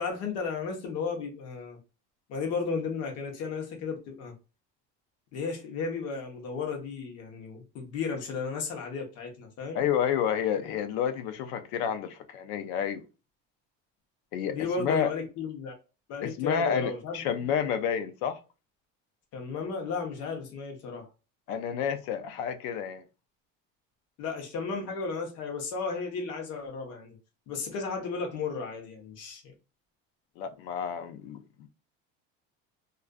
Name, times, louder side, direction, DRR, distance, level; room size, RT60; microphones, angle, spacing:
voice 1, 0.0-1.8 2.3-4.3 5.3-9.8 14.4-15.7 16.1-17.2 19.3-21.1 24.2-27.2 27.5-29.5, left 5 dB, 55° left, 0.8 m, -34 dB
voice 2, 9.7-13.0 14.3-15.1 16.2-18.4 21.5-23.0 30.4-31.7, left 8 dB, 80° left, 0.6 m, -30 dB
2.4 x 2.3 x 2.2 m
cardioid pair, 165°, 31 cm